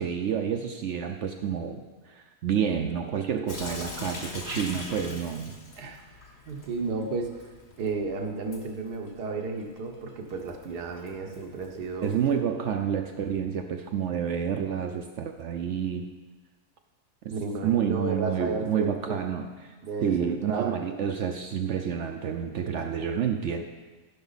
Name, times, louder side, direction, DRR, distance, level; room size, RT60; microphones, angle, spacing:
voice 1, 0.0-5.6 12.0-16.1 17.2-17.3 17.6-19.7 20.0-23.6, right 8 dB, 65° right, 5 dB, 0.7 m, -29 dB
Sink (filling or washing) / Drip, 3.5-12.4, left 2 dB, 45° left, 1.4 m, -43 dB
voice 2, 4.5-5.0 5.8-6.0 6.5-7.3 7.8-12.1 17.3-19.2 19.8-20.7, right 3 dB, 90° right, 3 dB, 1.6 m, -33 dB
14.5 x 6.1 x 4.0 m, 1.3 s
omnidirectional pair, 1.7 m